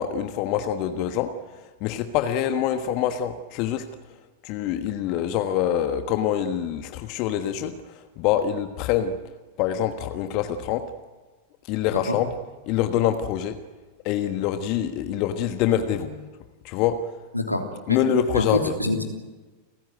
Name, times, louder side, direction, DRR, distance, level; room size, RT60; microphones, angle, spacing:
voice 1, 0.0-4.2 4.4-9.2 9.6-10.9 11.7-12.3 12.7-13.6 14.0-16.3 16.6-17.1 17.9-18.7, left 10 dB, 40° left, 8 dB, 1.4 m, -25 dB
voice 2, 18.3-19.0, left 2 dB, 90° left, 2 dB, 3.3 m, -25 dB
30.0 x 15.5 x 9.4 m, 1.3 s
figure-of-eight pair, 90°, 0 cm